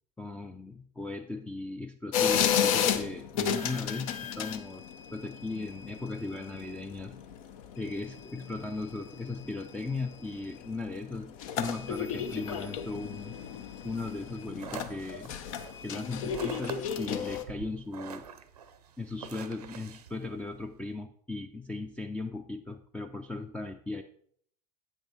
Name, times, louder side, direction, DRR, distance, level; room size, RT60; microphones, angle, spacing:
voice 1, 0.2-4.8 5.1-7.2 7.8-13.4 13.8-15.4 15.8-18.3 19.0-24.0, left 3 dB, 5° left, 6 dB, 0.4 m, -37 dB
sound 1, 2.1-17.4, left 8 dB, 60° left, 0.7 m, -33 dB
sound 2, 14.2-20.9, right 7 dB, 75° right, 0.6 m, -46 dB
8.2 x 5.9 x 4.0 m, 0.62 s
figure-of-eight pair, 70°, 20 cm